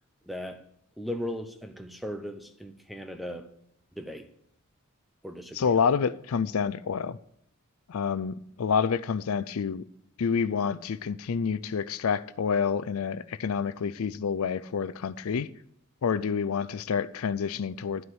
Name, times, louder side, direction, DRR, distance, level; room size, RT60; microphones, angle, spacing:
voice 1, 0.2-0.6 1.0-3.5 4.0-4.3 5.2-5.7, left 1 dB, ahead, 0.7 m, -37 dB
voice 2, 5.5-7.2 7.9-9.8 10.2-15.5 16.0-18.0, left 6 dB, 75° left, 0.5 m, -28 dB
12.5 x 4.8 x 7.9 m
head